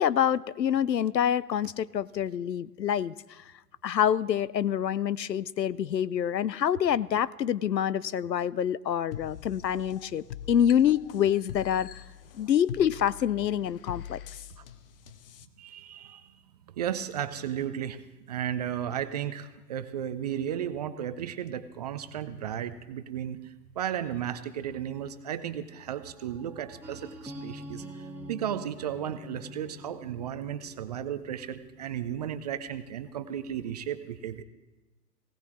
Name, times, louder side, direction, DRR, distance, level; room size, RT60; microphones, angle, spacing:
voice 1, 0.0-3.4 3.8-11.9 12.3-14.2, left 9 dB, 80° left, 20 dB, 0.6 m, -26 dB
sound 1, 9.1-15.5, left 10 dB, 35° left, 0.6 m, -44 dB
voice 2, 15.6-16.2 16.8-18.0 18.3-23.4 23.8-27.8 28.3-34.4, right 9 dB, 25° right, 12 dB, 0.5 m, -34 dB
sound 2, 26.8-32.6, equal, 5° right, 1.7 m, -45 dB
19.5 x 17.5 x 3.1 m, 1.1 s
figure-of-eight pair, 110°, 49 cm